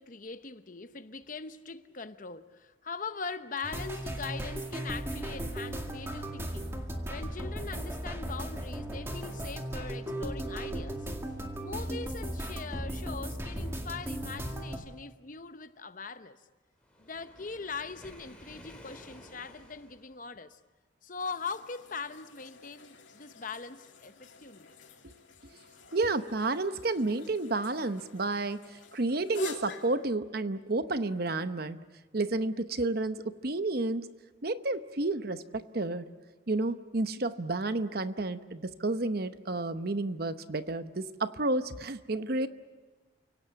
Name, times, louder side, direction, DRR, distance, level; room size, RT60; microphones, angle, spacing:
voice 1, 0.0-6.7 7.1-11.1 11.6-16.4 17.0-20.6 21.0-24.7, left 4 dB, 40° left, 0.8 m, -41 dB
sound 1, 3.6-14.8, right 1 dB, 15° right, 2.0 m, -36 dB
Waves surf, 16.8-20.1, left 1 dB, 5° left, 3.8 m, -52 dB
sound 2, 21.2-30.1, left 2 dB, 75° left, 2.7 m, -45 dB
voice 2, 25.9-28.6 28.9-31.8 32.1-34.1 34.4-36.1 36.5-42.5, right 2 dB, 50° right, 0.9 m, -31 dB
29.5 x 17.5 x 8.6 m
head